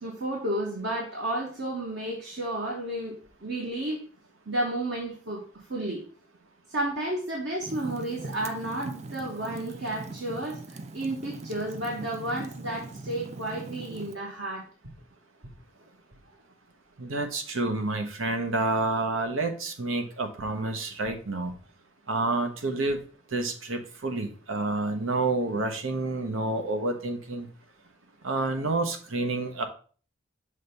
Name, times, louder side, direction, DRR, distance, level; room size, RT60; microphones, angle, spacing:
voice 1, 0.0-4.0 4.5-6.0 6.7-14.6, right 1 dB, 55° right, -2 dB, 1.3 m, -32 dB
Fire, 7.6-14.1, right 2 dB, 35° right, 0.4 m, -41 dB
voice 2, 17.0-21.5 22.1-23.0 23.3-27.5 28.2-29.7, right 2 dB, 80° right, 5 dB, 1.1 m, -29 dB
6.5 x 3.3 x 5.3 m, 0.40 s
head